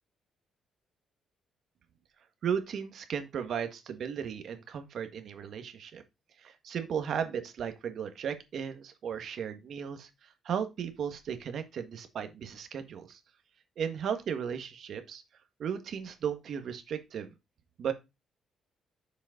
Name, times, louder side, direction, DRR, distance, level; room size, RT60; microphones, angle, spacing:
voice 1, 2.4-6.0 6.4-10.1 10.4-13.2 13.8-15.2 15.6-17.3 17.8-17.9, right 7 dB, 65° right, 8 dB, 1.6 m, -35 dB
7.1 x 5.1 x 5.1 m, 0.24 s
cardioid pair, 90°, 0 cm